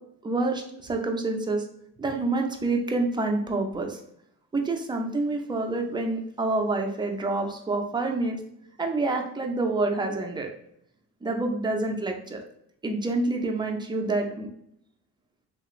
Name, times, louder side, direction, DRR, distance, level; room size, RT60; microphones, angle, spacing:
voice 1, 0.2-1.7 2.0-4.0 4.5-8.4 8.8-10.5 11.2-12.4 12.8-14.5, right 2 dB, 15° right, 2 dB, 0.5 m, -27 dB
2.9 x 2.5 x 3.0 m, 0.73 s
cardioid pair, 90°, 30 cm